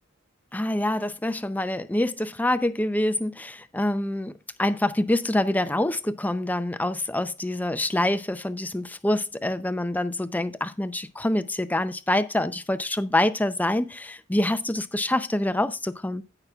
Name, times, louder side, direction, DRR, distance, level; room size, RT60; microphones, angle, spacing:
voice 1, 0.5-4.3 4.6-16.2, left 1 dB, 10° left, 0.5 m, -26 dB
16.0 x 5.8 x 2.3 m
head